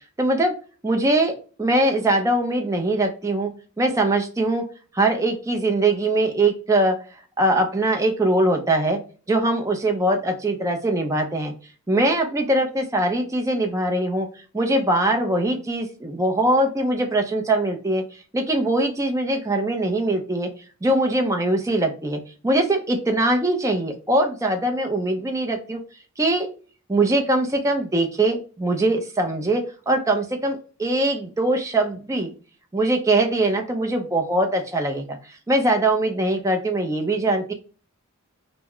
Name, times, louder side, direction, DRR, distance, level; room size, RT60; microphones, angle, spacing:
voice 1, 0.2-0.5 0.8-3.5 3.8-4.7 4.9-9.0 9.3-11.5 11.9-14.3 14.5-20.5 20.8-25.8 26.2-26.5 26.9-32.3 32.7-37.5, right 1 dB, 15° right, 4 dB, 0.4 m, -22 dB
2.2 x 2.0 x 3.6 m, 0.37 s
head